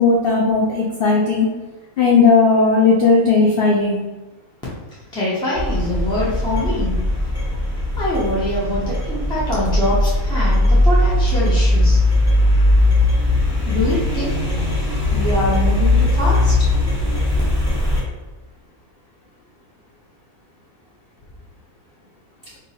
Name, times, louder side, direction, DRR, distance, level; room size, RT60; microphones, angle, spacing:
voice 1, 0.0-1.5 2.0-4.0, left 4 dB, 70° left, -3 dB, 0.5 m, -15 dB
voice 2, 5.1-6.9 8.0-12.0 13.6-14.3 15.1-16.5, left 1 dB, 5° left, -8 dB, 0.5 m, -23 dB
sound 1, 5.6-18.0, left 1 dB, 15° right, 1.4 m, -18 dB
2.7 x 2.6 x 4.1 m, 1.2 s
omnidirectional pair, 1.6 m